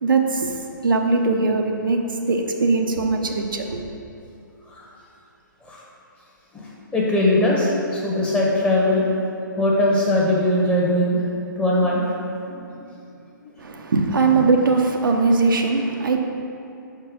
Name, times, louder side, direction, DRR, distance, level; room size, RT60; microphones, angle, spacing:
voice 1, 0.0-0.6 0.8-2.0 2.3-3.8 13.6-16.2, right 3 dB, 75° right, 3 dB, 0.7 m, -20 dB
voice 2, 6.5-9.0 9.6-11.2 11.6-12.1 12.4-12.6, left 1 dB, 10° left, -5 dB, 1.0 m, -20 dB
5.5 x 4.5 x 5.2 m, 2.7 s
hypercardioid pair, 135°, 11 cm